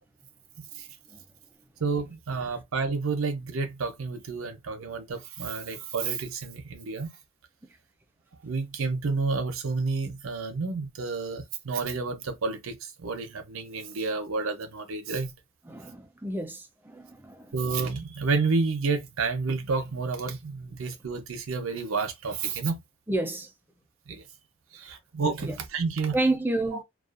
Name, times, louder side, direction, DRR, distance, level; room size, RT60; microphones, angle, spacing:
voice 1, 0.6-0.9 1.8-7.1 8.4-15.3 17.5-22.8 24.1-24.3 24.7-26.2, right 4 dB, 85° right, 0.6 m, -30 dB
voice 2, 15.7-17.5 23.1-23.5 25.4-25.6 26.1-26.8, right 2 dB, 10° right, 0.4 m, -30 dB
2.4 x 2.3 x 2.4 m
head